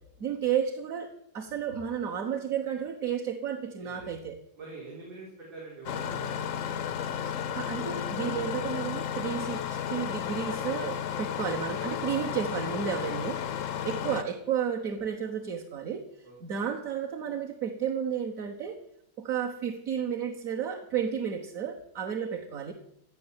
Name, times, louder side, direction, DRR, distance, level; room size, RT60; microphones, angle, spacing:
voice 1, 0.2-1.1 1.3-4.4 7.5-13.4 13.8-16.0 16.4-18.8 19.2-22.7, right 8 dB, 50° right, 2 dB, 1.4 m, -32 dB
voice 2, 3.8-4.1 4.6-7.6 12.3-12.4 13.3-13.8 16.2-16.6, right 3 dB, 80° right, -5 dB, 5.0 m, -47 dB
Engine starting, 5.9-14.2, left 9 dB, 65° left, 0.8 m, -33 dB
16.5 x 6.3 x 9.8 m, 0.77 s
omnidirectional pair, 2.1 m